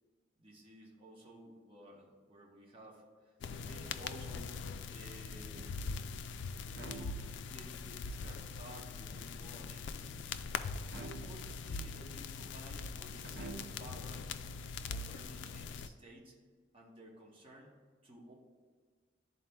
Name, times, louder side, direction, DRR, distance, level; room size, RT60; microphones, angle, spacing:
voice 1, 0.4-4.6 4.9-5.8 6.8-10.3 11.0-14.3 14.9-16.4 16.7-17.8 18.0-18.3, right 1 dB, 30° right, -3 dB, 1.0 m, -54 dB
sound 1, 3.4-15.9, left 4 dB, 85° left, 0.3 m, -42 dB
sound 2, 5.5-6.1 6.7-7.7 10.9-11.7 13.2-14.0, right 3 dB, 65° right, 0.5 m, -49 dB
11.0 x 4.1 x 2.3 m, 1.5 s
head